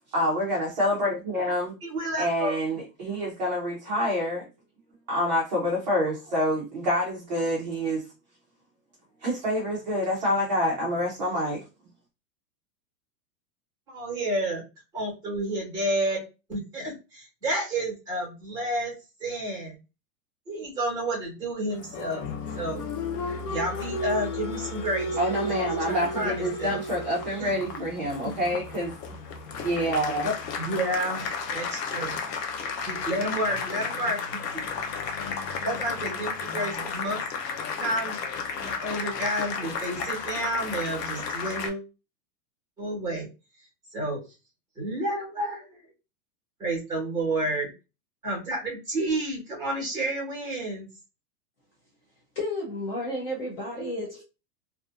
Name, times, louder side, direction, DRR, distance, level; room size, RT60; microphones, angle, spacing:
voice 1, 0.1-1.7 2.2-4.4 5.1-8.0 9.2-11.6 25.2-28.9 29.6-30.3, equal, 30° right, 0.4 m, -27 dB
voice 2, 1.8-2.5 13.9-14.6 14.9-16.2 16.5-18.9 19.2-19.8 20.5-22.3 22.5-22.8 23.4-25.2 25.5-26.8 27.4-27.8 28.2-28.3 30.2-32.2 32.9-34.2 35.6-37.2 37.8-38.1 38.6-41.8 42.8-43.3 43.9-44.2 44.8-45.7 46.6-47.7 48.2-50.9, right 1 dB, 10° right, 1.0 m, -30 dB
Applause, 21.7-41.7, left 4 dB, 80° left, 0.8 m, -33 dB
voice 3, 52.4-54.2, left 1 dB, 40° left, 0.4 m, -32 dB
2.5 x 2.4 x 2.4 m
supercardioid pair, 170°, 48 cm